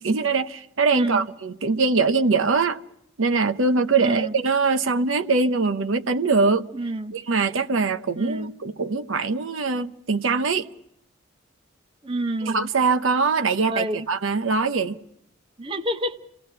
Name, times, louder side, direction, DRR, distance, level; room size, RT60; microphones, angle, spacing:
voice 1, 0.0-2.8 3.2-6.7 7.1-10.7 12.4-15.0, right 4 dB, 75° right, 0.8 m, -22 dB
voice 2, 0.9-1.3 4.0-4.3 6.7-7.1 8.2-8.5 12.0-12.7 13.7-14.1 15.6-16.2, right 1 dB, 25° right, 0.8 m, -28 dB
27.5 x 17.5 x 5.7 m
head